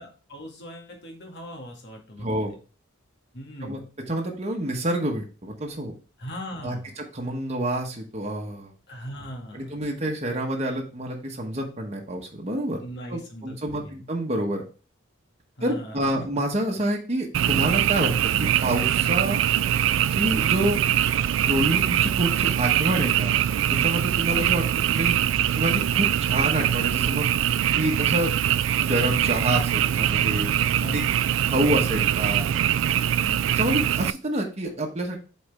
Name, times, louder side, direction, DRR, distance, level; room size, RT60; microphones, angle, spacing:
voice 1, 0.0-2.3 3.3-3.8 6.2-7.0 8.9-10.1 12.8-14.0 15.6-16.0 24.2-24.6 30.8-31.2 33.2-33.6, equal, 55° left, 1 dB, 2.0 m, -39 dB
voice 2, 2.2-2.5 3.6-3.8 4.1-5.9 6.6-6.8 7.1-8.7 9.5-12.8 13.1-14.6 15.6-19.4 20.1-20.8 21.4-23.3 23.7-25.1 25.6-27.3 27.8-28.3 28.8-30.5 30.9-31.0 31.4-32.5 33.5-35.2, right 1 dB, 35° right, 0 dB, 1.2 m, -27 dB
Frog, 17.3-34.1, right 10 dB, 65° right, 0.3 m, -23 dB
7.9 x 4.3 x 3.4 m, 0.35 s
head